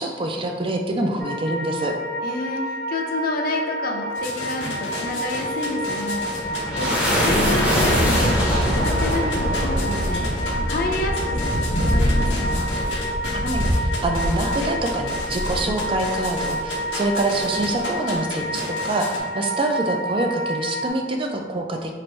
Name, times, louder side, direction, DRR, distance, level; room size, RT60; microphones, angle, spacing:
voice 1, 0.0-1.9 13.3-21.9, right 2 dB, 30° right, 3 dB, 0.4 m, -25 dB
sound 1, 1.2-20.9, equal, 80° right, 1.1 m, -30 dB
voice 2, 2.2-12.7, left 2 dB, 55° left, 2 dB, 0.5 m, -29 dB
sound 2, 4.1-19.2, left 2 dB, 90° left, 0.7 m, -33 dB
sound 3, 6.1-16.7, equal, 5° right, 0.7 m, -23 dB
3.2 x 2.5 x 4.3 m, 1.5 s
head